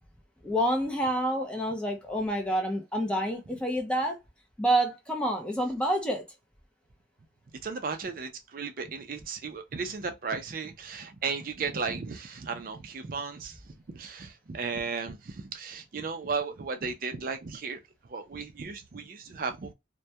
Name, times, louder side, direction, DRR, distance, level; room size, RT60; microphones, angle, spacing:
voice 1, 0.4-4.2 4.6-6.2, right 1 dB, 5° left, 0.5 m, -28 dB
voice 2, 7.6-13.5 13.9-17.8 18.1-19.7, right 5 dB, 45° right, 0.4 m, -35 dB
2.2 x 2.1 x 2.6 m
head